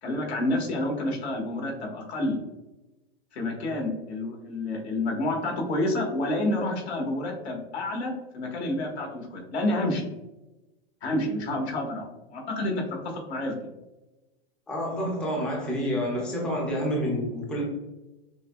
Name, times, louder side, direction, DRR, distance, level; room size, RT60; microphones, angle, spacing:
voice 1, 0.0-2.4 3.3-10.1 11.0-12.8 13.1-13.7, left 1 dB, 85° left, 0 dB, 1.4 m, -29 dB
voice 2, 14.7-17.6, equal, 5° left, -2 dB, 0.4 m, -28 dB
6.1 x 2.2 x 2.2 m, 1.0 s
hypercardioid pair, 145°, 32 cm